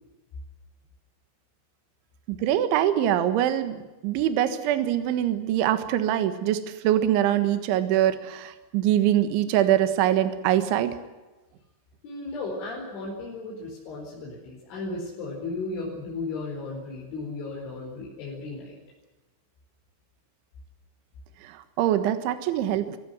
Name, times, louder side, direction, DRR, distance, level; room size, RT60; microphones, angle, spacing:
voice 1, 2.3-11.0 21.4-23.0, right 11 dB, 75° right, 9 dB, 3.7 m, -24 dB
voice 2, 12.0-18.8, left 3 dB, 70° left, -3 dB, 7.1 m, -35 dB
25.0 x 16.0 x 9.6 m, 1.1 s
omnidirectional pair, 5.8 m